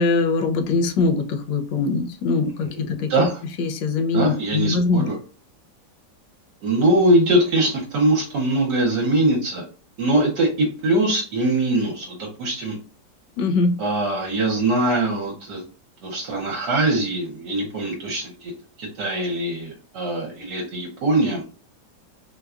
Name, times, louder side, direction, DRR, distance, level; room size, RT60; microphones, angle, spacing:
voice 1, 0.0-3.1 3.6-5.1 13.4-13.7, left 3 dB, 80° left, 5 dB, 1.3 m, -22 dB
voice 2, 2.6-3.4 4.1-5.2 6.6-9.6 10.0-12.8 13.8-15.6 16.0-18.5 18.8-21.4, right 1 dB, 70° right, -1 dB, 1.4 m, -22 dB
4.4 x 2.3 x 2.4 m, 0.37 s
omnidirectional pair, 2.0 m